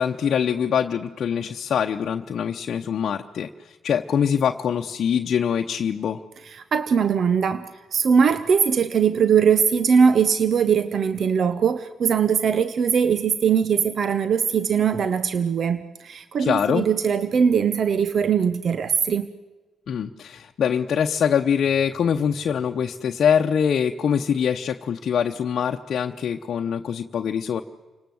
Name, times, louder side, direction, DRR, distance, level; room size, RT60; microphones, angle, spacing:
voice 1, 0.0-6.2 16.4-16.9 19.9-27.6, left 7 dB, 65° left, 3 dB, 0.8 m, -24 dB
voice 2, 6.4-19.3, right 6 dB, 60° right, 13 dB, 0.9 m, -21 dB
30.0 x 19.0 x 7.8 m, 1.3 s
supercardioid pair, 60°, 0 cm